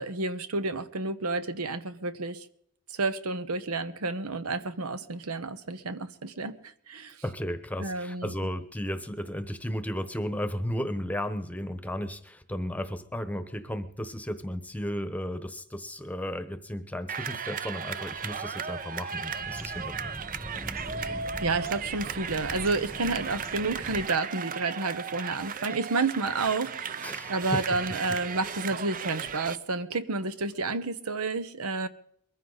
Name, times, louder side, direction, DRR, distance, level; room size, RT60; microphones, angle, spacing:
voice 1, 0.0-2.5 2.9-7.2 7.8-8.3 21.0-27.0 27.3-31.9, right 3 dB, 85° right, 1.1 m, -30 dB
voice 2, 7.2-20.1 27.0-27.6, equal, 5° left, 1.0 m, -34 dB
sound 1, 17.1-29.6, right 6 dB, 40° right, 0.6 m, -36 dB
sound 2, 18.2-24.0, equal, 10° right, 1.3 m, -42 dB
22.5 x 15.0 x 4.0 m
head